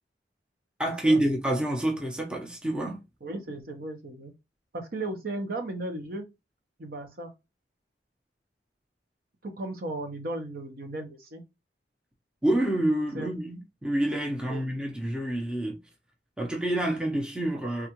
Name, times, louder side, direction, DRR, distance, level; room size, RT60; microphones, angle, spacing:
voice 1, 0.8-3.0 12.4-15.8 16.4-17.9, right 1 dB, 5° right, 0.6 m, -27 dB
voice 2, 3.2-4.3 4.7-6.3 6.8-7.3 9.4-11.4 13.1-13.4 14.5-14.6, right 2 dB, 55° right, 0.8 m, -35 dB
3.5 x 2.3 x 2.9 m
head